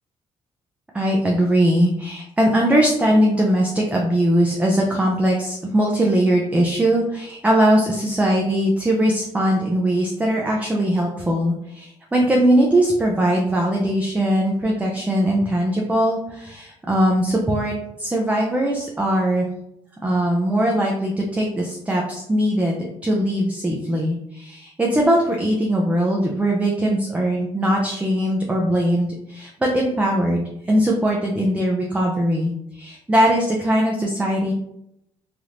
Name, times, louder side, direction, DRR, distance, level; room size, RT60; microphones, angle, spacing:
voice 1, 0.9-19.5 20.0-34.5, right 1 dB, 10° right, -1 dB, 0.5 m, -20 dB
3.3 x 2.5 x 2.9 m, 0.80 s
cardioid pair, 115°, 11 cm